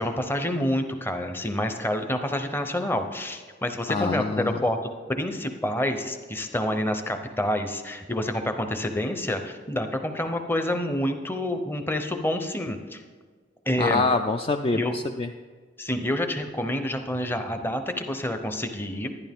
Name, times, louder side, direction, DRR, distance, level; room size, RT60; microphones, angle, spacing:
voice 1, 0.0-4.8 5.1-13.0 13.7-14.0 14.7-14.9 15.8-19.1, left 1 dB, 10° left, 7 dB, 0.7 m, -28 dB
voice 2, 3.9-4.6 13.8-15.3, left 3 dB, 30° left, 6 dB, 0.3 m, -25 dB
11.5 x 11.0 x 3.6 m, 1.5 s
head